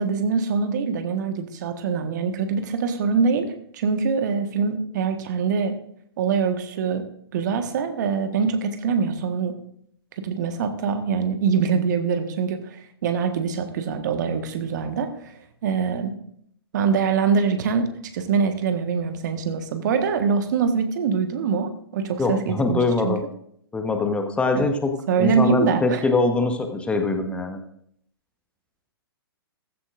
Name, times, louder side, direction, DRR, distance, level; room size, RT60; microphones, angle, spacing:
voice 1, 0.0-5.7 6.2-7.0 7.3-9.5 10.2-15.3 15.6-16.1 16.7-17.9 18.1-23.2 24.5-24.6 25.1-26.0, right 5 dB, 45° right, 7 dB, 1.5 m, -24 dB
voice 2, 22.2-23.2 23.7-24.9 25.2-27.6, left 3 dB, 10° left, 5 dB, 1.1 m, -23 dB
15.5 x 15.0 x 2.6 m, 0.69 s
figure-of-eight pair, 115°, 13 cm